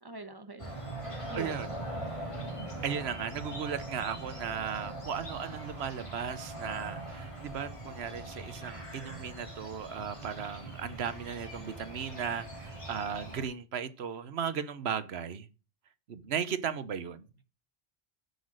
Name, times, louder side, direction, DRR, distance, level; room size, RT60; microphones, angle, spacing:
voice 1, 0.0-0.7 1.3-1.8, right 2 dB, 20° right, 1.1 m, -43 dB
sound 1, 0.6-13.4, right 1 dB, 30° left, 3.2 m, -41 dB
voice 2, 1.3-1.7 2.8-15.5 16.1-17.3, right 7 dB, 80° right, 1.1 m, -36 dB
7.8 x 7.1 x 6.3 m
omnidirectional pair, 1.1 m